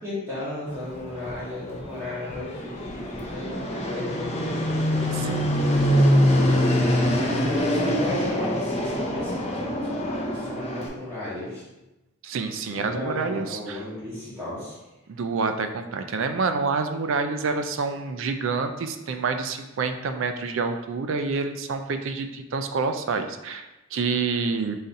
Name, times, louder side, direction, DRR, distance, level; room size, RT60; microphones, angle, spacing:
voice 1, 0.0-4.6 5.9-11.6 12.7-14.8, left 1 dB, 15° right, -10 dB, 1.1 m, -36 dB
Fixed-wing aircraft airplane, 0.7-10.9, equal, 30° left, 0.5 m, -24 dB
voice 2, 5.1-5.5 5.9-6.0 12.2-13.8 15.1-24.8, right 4 dB, 60° right, 7 dB, 0.4 m, -28 dB
4.0 x 2.6 x 4.0 m, 1.0 s
head